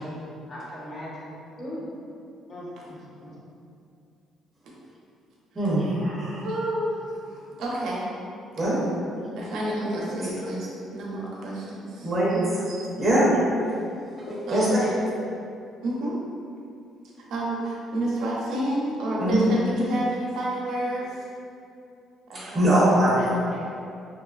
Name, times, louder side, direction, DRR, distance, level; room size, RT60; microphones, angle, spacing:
voice 1, 0.5-1.3 1.6-1.9 2.5-3.3 9.8-10.0 14.3-14.9, left 1 dB, 40° left, -6 dB, 0.7 m, -37 dB
voice 2, 5.6-6.4 8.6-8.8 12.0-12.6 13.0-13.3 14.5-14.7 19.2-19.4 22.3-23.1, right 1 dB, 15° right, -8 dB, 0.6 m, -22 dB
voice 3, 6.4-8.1 8.6-8.7 9.4-12.1 12.7-12.9 14.5-15.1 15.8-16.2 17.3-21.3 22.3-22.7 23.1-23.7, right 1 dB, 70° right, -4 dB, 0.5 m, -30 dB
2.7 x 2.4 x 2.3 m, 2.5 s
cardioid pair, 130°, 0 cm